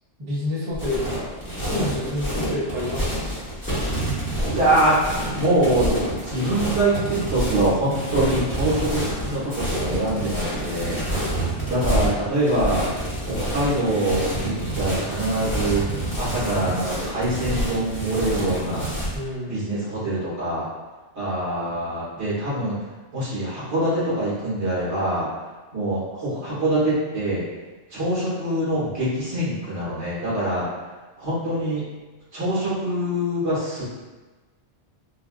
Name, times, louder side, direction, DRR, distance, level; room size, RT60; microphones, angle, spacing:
voice 1, 0.2-3.2 19.1-19.6, left 1 dB, 35° right, -6 dB, 0.6 m, -29 dB
sound 1, 0.7-19.2, right 1 dB, 10° left, 0.9 m, -27 dB
voice 2, 4.4-5.0 5.3-5.9 6.2-11.0 11.7-12.9 13.2-18.9 19.5-20.7 21.2-22.8 23.1-25.3 25.7-27.4 27.9-30.7 31.2-31.8 32.3-33.8, right 1 dB, 70° right, -9 dB, 1.7 m, -24 dB
3.6 x 2.3 x 2.3 m, 1.3 s
omnidirectional pair, 1.2 m